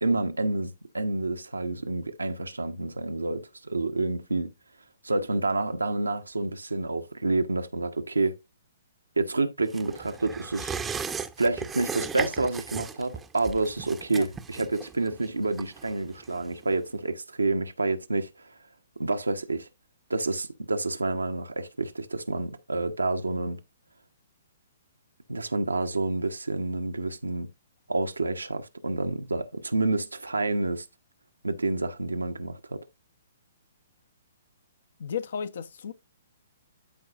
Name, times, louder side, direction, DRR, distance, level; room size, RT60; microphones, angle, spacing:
voice 1, 0.0-4.5 5.0-8.3 9.2-10.7 11.4-18.3 19.0-19.7 20.1-23.6 25.3-27.5 27.9-30.9 31.4-32.8, right 2 dB, 85° right, 1.1 m, -28 dB
sound 1, 9.7-16.8 17.1-17.2, right 6 dB, 10° right, 0.7 m, -37 dB
voice 2, 35.0-35.9, left 7 dB, 60° left, 0.9 m, -34 dB
12.5 x 4.8 x 2.5 m
figure-of-eight pair, 125°, 0 cm